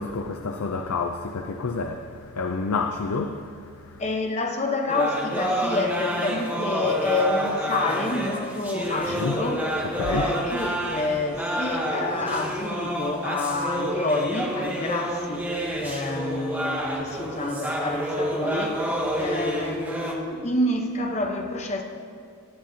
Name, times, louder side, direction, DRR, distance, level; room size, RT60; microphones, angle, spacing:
voice 1, 0.0-4.1 9.0-9.5 9.8-10.3, left 4 dB, 90° left, 0.5 m, -29 dB
voice 2, 4.0-9.7 10.1-15.5 15.8-18.9 19.2-21.8, left 2 dB, 30° left, 0.8 m, -28 dB
sound 1, 4.9-20.1, equal, 10° right, 0.8 m, -29 dB
16.5 x 8.6 x 2.7 m
head